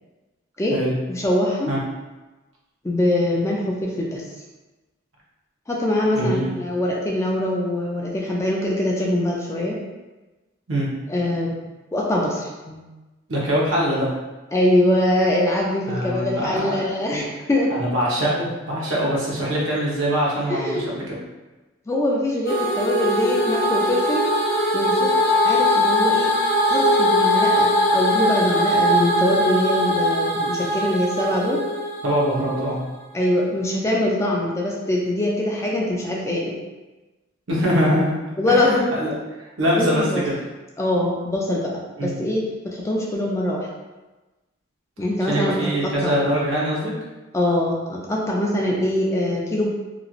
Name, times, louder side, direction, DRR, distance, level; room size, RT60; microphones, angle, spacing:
voice 1, 1.1-1.7 2.8-4.2 5.7-9.8 11.1-11.6 11.9-12.8 14.5-17.7 20.5-20.9 21.9-24.3 24.7-25.1 25.4-26.3 26.7-31.6 33.1-36.6 38.4-38.9 39.8-40.2 40.8-43.7 45.0-46.2 47.3-49.7, left 1 dB, 15° left, -3 dB, 0.3 m, -23 dB
voice 2, 6.1-6.5 10.7-10.9 13.3-14.1 15.9-16.9 17.7-21.2 32.0-32.8 37.5-38.1 38.5-40.3 42.0-42.2 45.3-46.9, equal, 80° right, -5 dB, 0.9 m, -23 dB
sound 1, 22.5-32.7, equal, 85° left, 0.7 m, -21 dB
3.0 x 2.5 x 2.4 m, 1.1 s
head